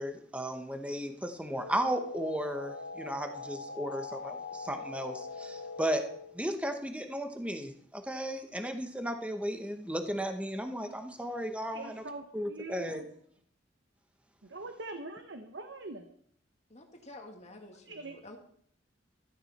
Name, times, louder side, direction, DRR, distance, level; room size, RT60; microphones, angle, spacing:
voice 1, 0.0-6.0 6.3-12.0 12.3-13.0, equal, 5° right, 6 dB, 1.0 m, -35 dB
sound 1, 1.4-6.4, left 4 dB, 85° left, 2.3 m, -42 dB
voice 2, 11.7-13.1 14.5-16.1 17.8-18.2, right 3 dB, 80° right, 6 dB, 1.1 m, -43 dB
voice 3, 16.7-18.4, left 2 dB, 40° left, 3 dB, 1.9 m, -50 dB
15.0 x 13.5 x 4.2 m, 0.63 s
head